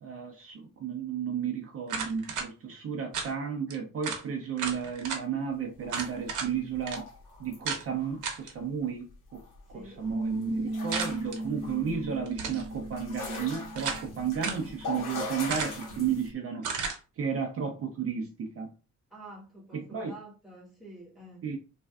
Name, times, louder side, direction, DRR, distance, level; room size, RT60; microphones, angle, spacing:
voice 1, 0.0-7.1 7.4-9.1 9.3-9.4 9.7-16.7 17.2-18.7 19.7-20.1 21.4-21.6, right 7 dB, 45° right, 0.5 m, -33 dB
sound 1, 1.9-2.5 3.1-3.3 3.7-3.8 4.0-4.2 4.6-5.2 5.9-6.5 6.9-7.0 7.7-7.8 8.2-8.5 10.9-11.4 12.3-12.7 13.3-14.1 14.4-14.6 15.5-15.9 16.6-17.0, right 5 dB, 70° right, 0.8 m, -33 dB
sound 2, 5.8-7.7 8.0-8.3 8.8-8.9 9.1-9.7 10.0-16.3, left 3 dB, 80° left, 1.1 m, -42 dB
voice 2, 9.7-10.1 19.1-21.6, right 1 dB, ahead, 1.1 m, -49 dB
Bass guitar, 10.1-16.3, right 2 dB, 30° left, 1.2 m, -38 dB
3.3 x 2.4 x 2.2 m
cardioid pair, 145°, 32 cm